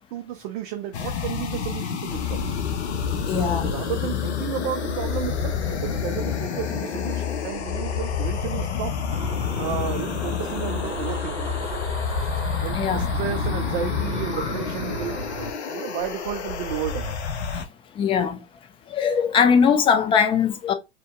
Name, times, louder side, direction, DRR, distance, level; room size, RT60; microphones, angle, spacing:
voice 1, 0.0-2.5 3.3-9.0 9.6-11.7 12.6-17.2, right 10 dB, 50° right, 0.5 m, -33 dB
sound 1, 0.9-17.7, left 6 dB, 75° left, 0.7 m, -30 dB
sound 2, 2.1-14.1, left 10 dB, 35° left, 1.9 m, -32 dB
voice 2, 3.3-3.7 12.7-13.0 17.5-17.7 18.0-18.4 18.9-20.7, left 7 dB, 15° left, 0.4 m, -20 dB
sound 3, 9.1-15.5, right 3 dB, 15° right, 0.9 m, -35 dB
2.8 x 2.8 x 3.3 m
hypercardioid pair, 100°, 34 cm